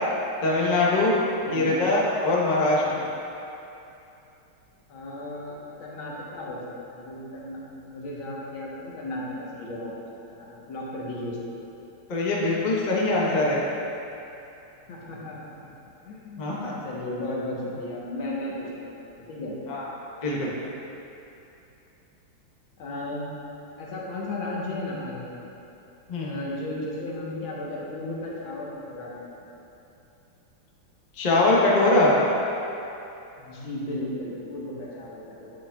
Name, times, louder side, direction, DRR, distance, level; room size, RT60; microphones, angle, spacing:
voice 1, 0.4-1.1 1.5-3.0 12.1-13.6 16.4-16.8 19.7-19.8 20.2-20.5 26.1-26.3 31.2-32.1, left 2 dB, 45° left, -5 dB, 0.5 m, -22 dB
voice 2, 1.4-1.8 2.8-3.1 4.9-11.4 14.9-15.7 16.1-19.6 22.8-23.3 23.8-25.4 26.2-29.5 33.4-35.5, left 1 dB, 70° left, -4 dB, 1.8 m, -35 dB
8.7 x 7.5 x 2.3 m, 2.8 s
omnidirectional pair, 2.4 m